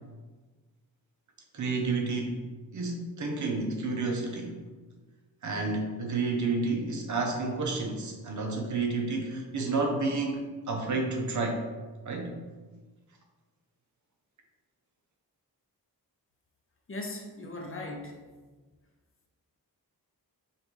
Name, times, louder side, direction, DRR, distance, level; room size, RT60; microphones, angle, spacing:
voice 1, 1.5-2.5 2.7-4.6 5.4-11.7 12.0-12.4, right 3 dB, 50° right, 2 dB, 0.7 m, -30 dB
voice 2, 16.9-18.2, left 2 dB, 35° left, 1 dB, 0.6 m, -38 dB
5.6 x 2.4 x 3.1 m, 1.3 s
wide cardioid pair, 115°, 37 cm